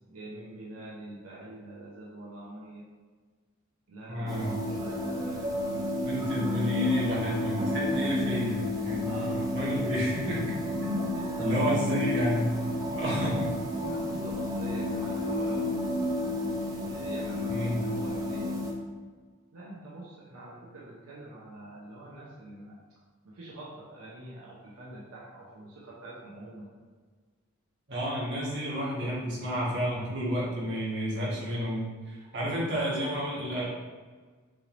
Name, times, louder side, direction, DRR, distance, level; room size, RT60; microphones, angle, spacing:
voice 1, 0.0-2.9 3.9-6.3 9.0-9.4 11.1-11.7 13.8-15.8 16.8-18.6 19.5-22.8 23.2-26.7, right 2 dB, 80° right, -6 dB, 0.8 m, -44 dB
voice 2, 4.1-4.5 6.0-10.5 10.8-12.5 12.9-13.5 13.8-14.0 17.5-17.8 27.9-33.7, equal, 50° right, -6 dB, 1.4 m, -30 dB
sound 1, 4.3-18.7, left 1 dB, 15° right, 0.5 m, -31 dB
6.0 x 3.3 x 2.6 m, 1.5 s
head